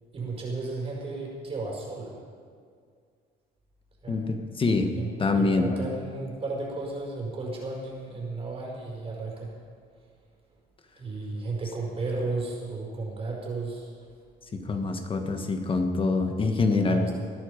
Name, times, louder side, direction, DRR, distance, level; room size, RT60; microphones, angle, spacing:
voice 1, 0.1-2.2 4.0-4.3 5.0-9.5 11.0-13.9 16.8-17.1, right 3 dB, 35° right, -2 dB, 5.5 m, -34 dB
voice 2, 4.1-4.9 5.2-5.7 14.5-17.0, left 3 dB, 30° left, 6 dB, 1.6 m, -25 dB
20.0 x 12.0 x 5.3 m, 2.1 s
cardioid pair, 110°, 17 cm